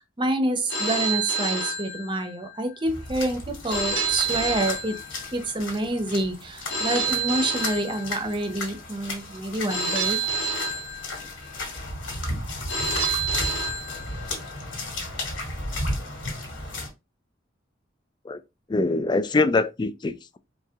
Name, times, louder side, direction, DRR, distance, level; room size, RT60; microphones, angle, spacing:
voice 1, 0.2-5.0 5.3-10.3, right 1 dB, 25° right, 0.8 m, -27 dB
Telephone, 0.7-2.6 3.7-5.6 6.7-8.6 9.7-11.6 12.7-14.6, right 3 dB, 70° left, 1.4 m, -29 dB
sound 1, 2.8-16.9, left 2 dB, 90° left, 2.1 m, -34 dB
sound 2, 4.0-4.9 6.9-7.4 9.9-10.8 13.0-13.8, right 10 dB, 80° right, 0.4 m, -37 dB
voice 2, 18.7-20.4, left 3 dB, 25° left, 0.3 m, -24 dB
4.6 x 2.8 x 3.5 m
head